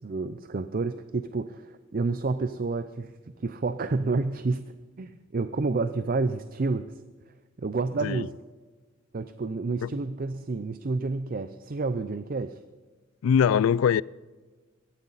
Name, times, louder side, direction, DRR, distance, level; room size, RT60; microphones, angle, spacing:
voice 1, 0.0-7.0 7.3-8.3 9.1-12.6, right 3 dB, 45° right, 0.5 m, -30 dB
voice 2, 13.2-14.0, left 7 dB, 80° left, 0.3 m, -22 dB
17.0 x 13.5 x 4.1 m
head